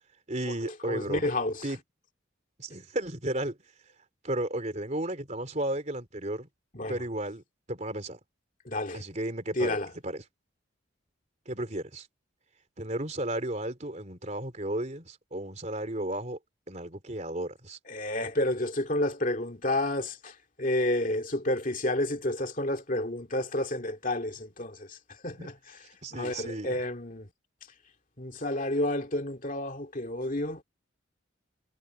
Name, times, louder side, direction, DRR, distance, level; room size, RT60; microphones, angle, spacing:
voice 1, 0.3-1.3 1.6-1.8 2.6-3.6 4.2-6.5 6.9-8.2 8.9-9.8 10.0-10.2 11.5-12.1 12.8-16.4 16.7-17.8 25.4-25.5 26.0-26.8, right 1 dB, 35° right, 3.5 m, -34 dB
voice 2, 0.9-1.6 6.7-7.0 8.7-9.0 9.6-9.9 17.9-20.3 20.6-25.0 25.2-25.5 26.1-27.3 28.2-30.6, left 1 dB, 40° left, 2.4 m, -30 dB
head